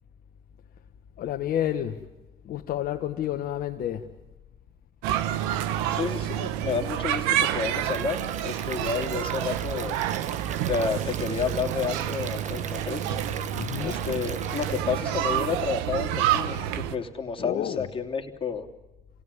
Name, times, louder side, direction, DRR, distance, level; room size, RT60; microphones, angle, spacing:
voice 1, 1.2-2.1 2.4-4.1 13.5-14.1 17.4-17.9, left 11 dB, 60° left, 1.3 m, -30 dB
sound 1, 5.0-17.0, right 11 dB, 80° right, 1.2 m, -28 dB
voice 2, 5.9-10.0 10.7-13.2 13.8-18.7, left 5 dB, 30° left, 2.8 m, -30 dB
Stream / Liquid, 7.8-14.8, right 7 dB, 45° right, 1.3 m, -41 dB
27.5 x 17.5 x 9.8 m
supercardioid pair, 75°, 17 cm